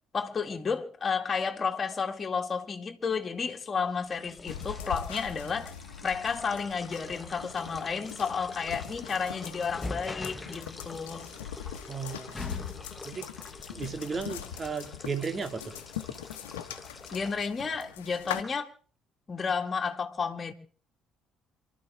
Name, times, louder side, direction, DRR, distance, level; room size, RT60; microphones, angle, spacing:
voice 1, 0.1-5.7 6.0-11.3 17.1-18.7 19.3-20.5, left 5 dB, 35° left, 2.1 m, -32 dB
sound 1, 3.9-17.4, left 2 dB, 20° left, 1.2 m, -45 dB
sound 2, 4.5-18.4, left 9 dB, 90° left, 1.3 m, -42 dB
voice 2, 11.9-12.3 13.0-13.3 13.7-15.8, right 5 dB, 40° right, 2.4 m, -34 dB
27.5 x 12.5 x 3.6 m
hypercardioid pair, 55°, 0 cm